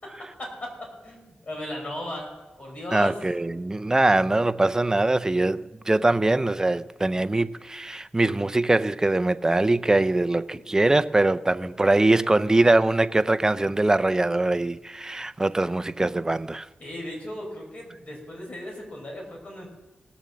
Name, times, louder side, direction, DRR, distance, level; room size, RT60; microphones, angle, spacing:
voice 1, 0.0-2.3 2.6-3.2 16.8-19.7, left 1 dB, 45° left, 5.5 m, -36 dB
voice 2, 2.9-16.7, right 2 dB, 20° right, 0.5 m, -22 dB
18.0 x 7.1 x 7.6 m
cardioid pair, 80°, 3 cm